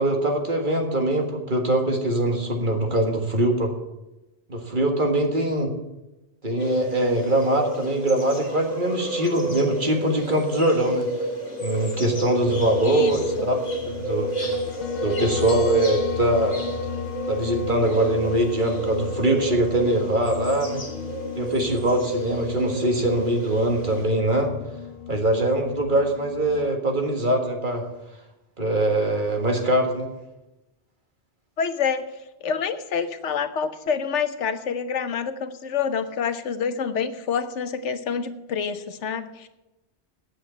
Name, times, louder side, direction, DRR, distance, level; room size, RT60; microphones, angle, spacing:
voice 1, 0.0-3.7 4.5-5.7 6.4-11.1 11.6-13.6 13.8-14.5 15.0-16.6 17.3-20.8 21.4-24.5 25.1-27.8 28.6-30.1, right 1 dB, 45° right, 2 dB, 1.8 m, -22 dB
sound 1, 6.6-24.1, equal, 35° left, 2.3 m, -31 dB
sound 2, 12.5-26.7, left 7 dB, 60° left, 0.8 m, -36 dB
voice 2, 12.8-13.5 31.6-32.1 32.4-39.5, left 6 dB, 90° left, 11 dB, 1.2 m, -27 dB
9.3 x 7.7 x 8.8 m, 1.0 s
omnidirectional pair, 1.2 m